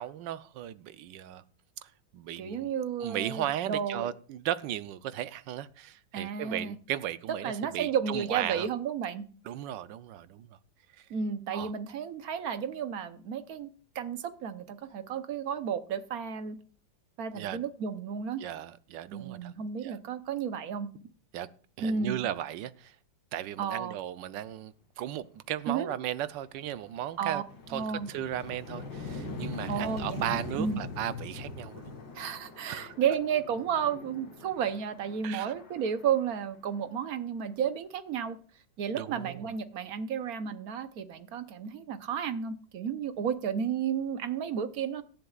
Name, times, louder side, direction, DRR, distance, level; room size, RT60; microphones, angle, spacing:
voice 1, 0.0-1.4 2.1-2.7 3.0-8.7 9.5-10.5 11.5-11.7 17.3-17.6 18.4-19.5 19.8-20.0 21.3-21.5 21.8-22.9 23.3-27.4 27.7-31.9 32.7-32.9 35.2-35.5 38.9-39.4, right 11 dB, 75° right, 1.3 m, -36 dB
voice 2, 2.4-4.1 6.1-6.8 7.4-9.2 11.1-13.7 13.9-16.6 17.2-18.4 19.1-20.9 21.8-22.2 23.6-24.0 25.7-25.9 27.2-27.4 27.7-28.1 29.7-30.8 32.1-38.4 38.8-45.0, right 7 dB, 60° right, 1.2 m, -32 dB
sound 1, 25.7-25.8 26.3-37.0, left 3 dB, 85° left, 2.7 m, -42 dB
17.5 x 11.5 x 2.4 m
omnidirectional pair, 2.0 m